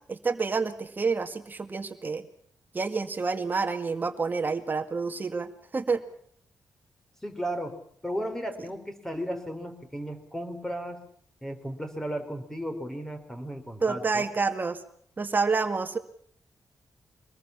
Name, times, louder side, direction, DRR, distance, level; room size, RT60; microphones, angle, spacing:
voice 1, 0.1-2.3 2.7-6.0 13.8-14.8 15.2-16.0, right 4 dB, 30° right, 7 dB, 2.0 m, -28 dB
voice 2, 7.2-7.7 8.0-11.0 11.4-14.2, equal, 5° left, 7 dB, 4.4 m, -35 dB
24.5 x 20.5 x 7.2 m, 0.63 s
wide cardioid pair, 135°, 7 cm